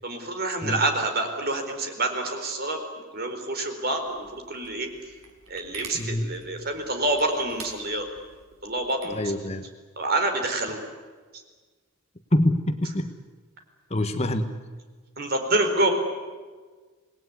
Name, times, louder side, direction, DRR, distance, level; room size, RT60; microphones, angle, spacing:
voice 1, 0.0-2.8 3.1-4.9 5.5-8.1 8.6-9.2 10.0-10.8 15.2-15.9, right 2 dB, 45° right, 5 dB, 4.3 m, -27 dB
sound 1, 4.1-9.3, right 4 dB, 80° right, 5.4 m, -46 dB
voice 2, 5.9-6.3 9.1-9.6 12.3-13.1 13.9-14.5, left 1 dB, 30° left, 8 dB, 1.4 m, -25 dB
27.0 x 19.5 x 9.7 m, 1.4 s
head